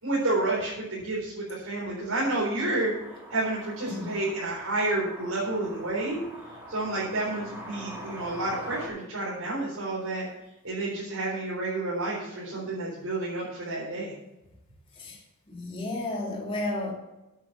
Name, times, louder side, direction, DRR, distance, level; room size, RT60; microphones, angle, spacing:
voice 1, 0.0-2.9 3.3-6.2 6.7-10.2 10.6-14.1, right 2 dB, 80° right, -7 dB, 4.0 m, -30 dB
sound 1, 2.8-8.9, right 1 dB, 10° right, 2.6 m, -43 dB
voice 2, 3.9-4.2 14.9-16.9, left 2 dB, 25° left, -2 dB, 2.4 m, -33 dB
8.9 x 8.4 x 7.2 m, 0.95 s
head